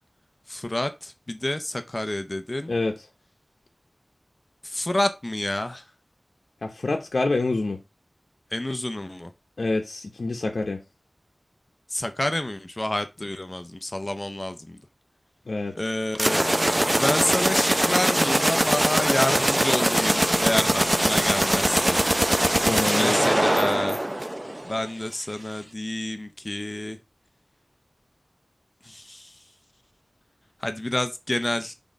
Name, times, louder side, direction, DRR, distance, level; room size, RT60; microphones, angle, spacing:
voice 1, 0.5-2.7 4.6-5.8 8.5-9.3 11.9-14.8 15.8-16.5 16.9-22.1 22.9-24.1 24.6-27.0 28.8-29.3 30.6-31.7, left 1 dB, 30° left, 0.7 m, -28 dB
voice 2, 6.6-7.8 9.6-10.8 15.5-15.7 22.6-23.2, left 2 dB, 85° left, 0.9 m, -26 dB
sound 1, 16.1-24.8, right 1 dB, 20° right, 0.5 m, -22 dB
6.3 x 3.6 x 5.1 m
wide cardioid pair, 60°, 0 cm